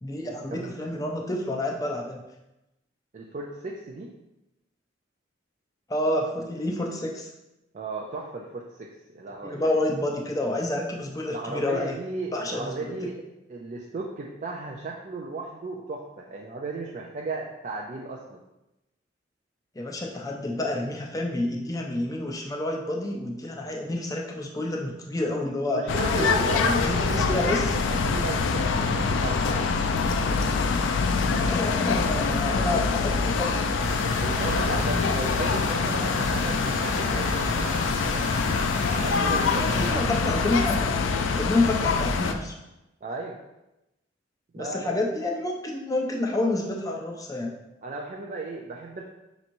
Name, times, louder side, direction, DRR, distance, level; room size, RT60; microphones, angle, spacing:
voice 1, 0.0-2.2 5.9-7.3 9.4-12.0 12.3-12.9 19.8-25.9 26.2-27.8 31.4-33.6 39.6-42.5 44.6-47.5, left 2 dB, 20° left, 0 dB, 0.5 m, -29 dB
voice 2, 3.1-4.1 7.7-9.7 11.3-13.2 13.5-18.4 25.7-29.7 34.2-37.7 39.0-40.1 43.0-43.4 44.5-44.9 47.8-49.0, right 3 dB, 40° right, -1 dB, 0.4 m, -35 dB
sound 1, 25.9-42.3, left 4 dB, 85° left, 0.3 m, -25 dB
sound 2, 33.8-39.9, left 1 dB, 40° left, 0.9 m, -36 dB
5.3 x 3.0 x 2.5 m, 0.94 s
head